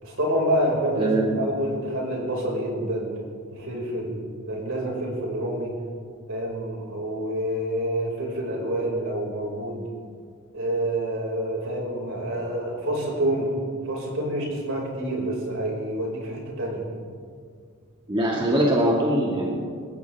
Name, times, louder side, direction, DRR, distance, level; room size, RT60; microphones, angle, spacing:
voice 1, 0.0-3.1 3.5-4.1 4.5-5.7 6.3-9.9 10.5-13.6 13.8-16.8, right 1 dB, 65° right, -2 dB, 5.4 m, -27 dB
voice 2, 1.0-1.4 18.1-19.5, right 1 dB, 25° right, -3 dB, 2.1 m, -22 dB
27.0 x 15.0 x 3.6 m, 2.1 s
head